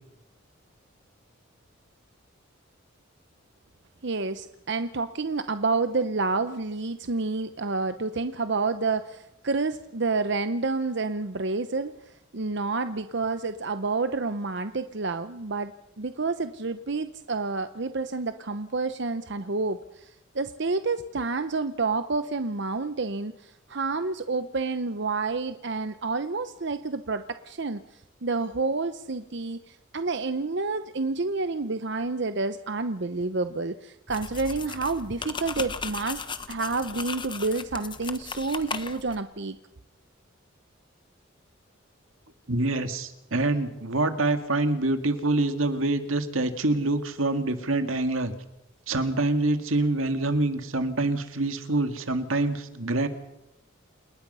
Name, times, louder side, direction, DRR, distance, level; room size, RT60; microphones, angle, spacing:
voice 1, 4.0-27.8 28.2-36.2 36.5-39.6, right 3 dB, 60° right, 10 dB, 0.8 m, -29 dB
sound 1, 34.1-39.2, left 5 dB, 25° left, 1.1 m, -37 dB
voice 2, 42.5-48.3 48.9-53.1, right 2 dB, 90° right, 8 dB, 2.0 m, -26 dB
29.0 x 19.0 x 5.6 m, 0.85 s
head